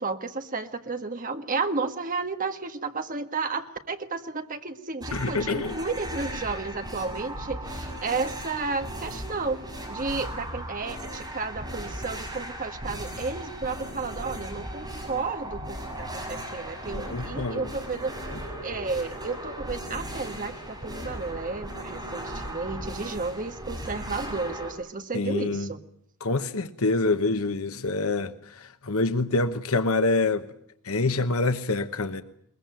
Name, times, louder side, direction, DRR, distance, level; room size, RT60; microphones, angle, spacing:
voice 1, 0.0-9.6 9.9-18.1 18.6-25.8, right 4 dB, 35° right, 6 dB, 1.7 m, -32 dB
sound 1, 5.0-24.7, right 1 dB, 20° right, 7.1 m, -37 dB
voice 2, 5.1-5.7 16.9-17.7 25.1-25.7 26.2-30.4 30.8-32.2, left 3 dB, 70° left, 10 dB, 1.1 m, -26 dB
22.0 x 21.0 x 9.2 m, 0.69 s
head